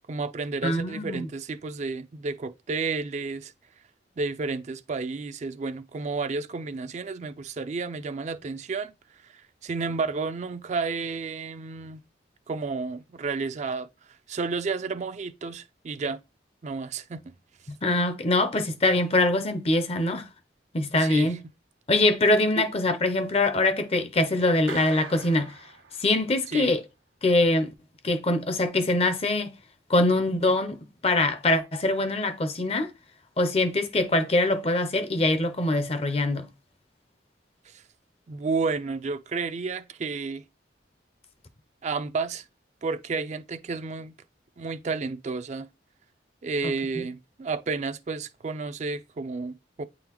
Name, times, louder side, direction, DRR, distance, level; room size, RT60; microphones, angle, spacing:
voice 1, 0.1-3.5 4.2-8.9 9.3-12.0 12.5-13.9 14.3-16.2 16.6-17.2 21.0-21.3 22.6-22.7 26.5-26.7 37.7-37.8 38.3-40.4 41.8-42.4 42.8-44.1 44.6-45.7 46.4-49.8, right 4 dB, 40° right, 0.4 m, -31 dB
voice 2, 0.6-1.3 17.8-20.3 20.7-21.4 21.9-25.6 26.0-26.8 27.2-27.7 28.0-29.5 29.9-32.9 33.4-36.5 46.6-46.7, left 2 dB, 35° left, 0.6 m, -23 dB
Clapping, 24.7-26.4, right 5 dB, 85° right, 1.3 m, -42 dB
8.6 x 3.8 x 3.0 m
head